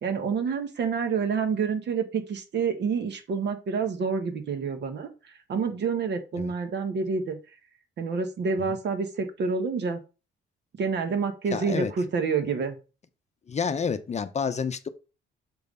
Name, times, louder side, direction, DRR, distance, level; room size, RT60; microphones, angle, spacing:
voice 1, 0.0-7.4 8.0-10.0 10.8-12.8, right 5 dB, 60° right, 1.4 m, -28 dB
voice 2, 11.5-11.9 13.5-14.9, left 6 dB, 35° left, 0.6 m, -29 dB
6.8 x 3.3 x 5.4 m
cardioid pair, 90°, 20 cm